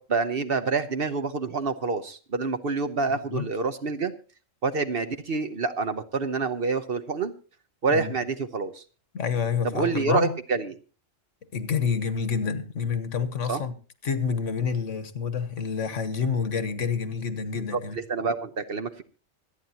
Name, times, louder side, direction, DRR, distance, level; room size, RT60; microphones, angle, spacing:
voice 1, 0.0-4.1 4.6-7.3 7.8-8.8 9.6-10.8 13.5-13.6 17.7-19.0, right 4 dB, 50° right, 1.0 m, -27 dB
voice 2, 9.1-10.3 11.5-13.7 14.0-18.0, left 6 dB, 70° left, 1.5 m, -28 dB
25.0 x 9.3 x 2.8 m
omnidirectional pair, 1.3 m